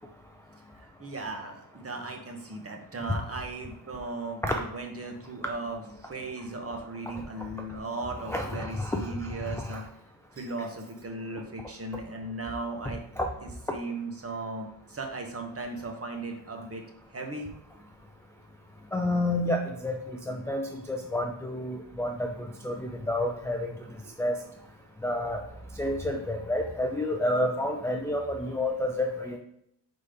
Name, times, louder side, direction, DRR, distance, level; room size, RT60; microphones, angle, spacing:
voice 1, 0.7-9.8 10.3-13.0 13.4-16.8 17.1-17.5 24.0-24.2, right 2 dB, 30° right, 3 dB, 1.0 m, -37 dB
voice 2, 8.3-9.0 9.7-9.8 13.2-13.3 18.9-20.0 20.3-22.3 22.6-23.7 24.2-24.3 25.0-25.4 25.8-29.4, left 1 dB, 5° left, 1 dB, 0.4 m, -29 dB
5.1 x 4.1 x 5.0 m, 0.74 s
wide cardioid pair, 150°, 47 cm